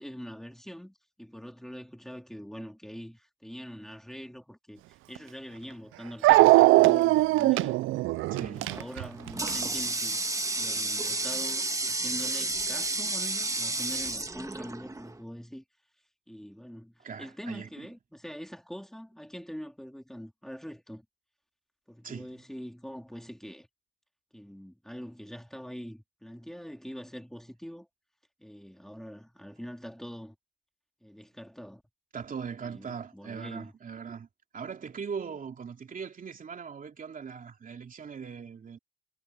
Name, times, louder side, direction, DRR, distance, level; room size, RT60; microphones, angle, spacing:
voice 1, 0.0-7.8 8.3-10.2 10.6-15.6 16.3-21.1 21.9-23.7 24.3-27.9 28.4-30.4 31.0-31.8 32.6-33.7, equal, ahead, 3.9 m, -43 dB
Dog, 5.2-5.3 6.2-9.6, right 19 dB, 90° right, 0.5 m, -20 dB
voice 2, 8.2-8.7 17.0-17.9 22.0-22.3 32.1-34.3 34.5-38.8, right 6 dB, 45° right, 3.1 m, -40 dB
Water tap faucet, 8.7-15.2, right 2 dB, 15° right, 1.7 m, -31 dB
cardioid pair, 90°, 20 cm